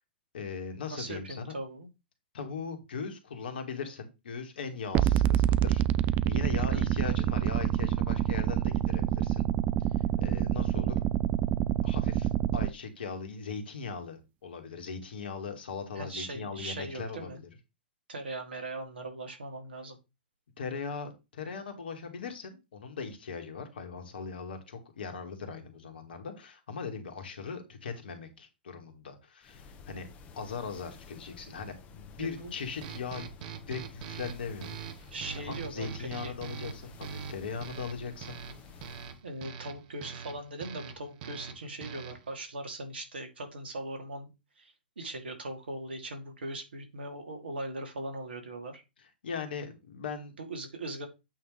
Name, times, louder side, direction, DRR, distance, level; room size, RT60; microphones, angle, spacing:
voice 1, 0.3-1.5 2.3-5.8 6.3-9.4 10.2-11.0 11.8-17.5 20.6-30.1 30.4-33.3 33.7-35.1 35.4-38.4 49.2-50.3, left 5 dB, 65° left, 6 dB, 2.1 m, -39 dB
voice 2, 0.9-1.9 6.7-6.9 16.0-17.4 18.1-20.0 32.2-32.6 35.1-36.3 39.2-44.3 44.6-48.8 50.4-51.1, right 2 dB, 75° right, 4 dB, 2.7 m, -40 dB
sound 1, 4.9-12.7, right 12 dB, 30° right, 0.4 m, -27 dB
sound 2, 29.4-39.2, left 5 dB, 25° left, 1.2 m, -52 dB
sound 3, 32.8-42.4, right 7 dB, 50° right, 1.4 m, -44 dB
8.5 x 3.7 x 4.9 m, 0.25 s
hypercardioid pair, 115°, 6 cm